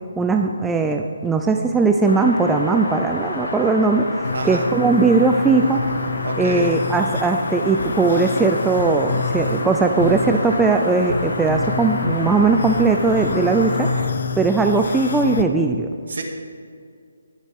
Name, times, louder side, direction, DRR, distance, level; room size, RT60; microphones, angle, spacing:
voice 1, 0.2-4.0 4.4-5.8 6.4-13.9 14.4-15.9, right 3 dB, 5° right, 3 dB, 0.3 m, -19 dB
sound 1, 2.0-13.9, left 2 dB, 80° left, 3.5 m, -29 dB
sound 2, 4.2-15.4, left 4 dB, 65° left, 0.7 m, -28 dB
voice 2, 4.3-4.7 6.2-6.7 16.1-16.2, right 3 dB, 60° right, 2 dB, 2.1 m, -28 dB
21.0 x 7.3 x 3.6 m, 2.2 s
hypercardioid pair, 170°, 0 cm